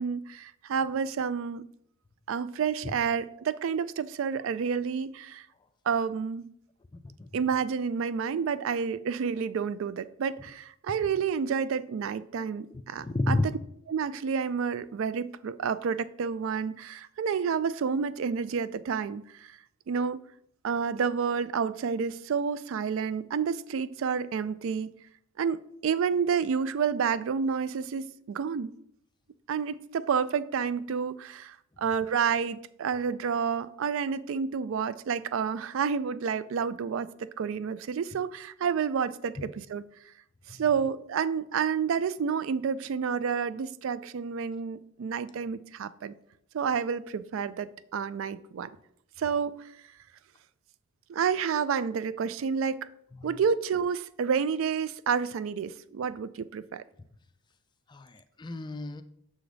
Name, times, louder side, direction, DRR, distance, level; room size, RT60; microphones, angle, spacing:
voice 1, 0.0-1.6 2.3-5.5 5.9-6.5 7.3-13.4 13.9-19.6 19.9-20.2 20.6-24.9 25.4-28.7 29.5-39.8 40.5-46.1 46.5-48.7 49.2-49.7 51.1-52.9 53.2-56.8, right 6 dB, 60° right, 0.3 m, -29 dB
voice 2, 6.9-7.3 12.7-13.6 39.4-39.5 40.5-40.6 53.2-53.3 57.9-59.0, left 2 dB, 20° left, 0.3 m, -32 dB
6.9 x 4.9 x 3.9 m
head